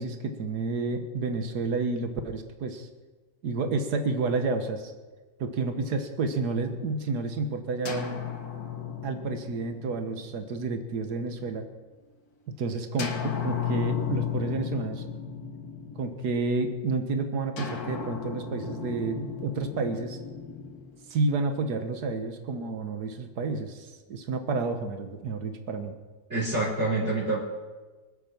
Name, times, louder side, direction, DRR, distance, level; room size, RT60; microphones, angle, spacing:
voice 1, 0.0-2.9 3.4-4.9 5.4-8.2 9.0-11.7 12.6-15.1 15.9-20.2 21.1-26.0, right 3 dB, 90° right, 7 dB, 1.8 m, -30 dB
sound 1, 7.8-11.6 13.0-16.5 17.6-21.7, left 7 dB, 70° left, 2.0 m, -35 dB
voice 2, 26.3-27.4, right 2 dB, 45° right, -8 dB, 3.7 m, -26 dB
25.0 x 8.5 x 5.9 m, 1.3 s
omnidirectional pair, 1.7 m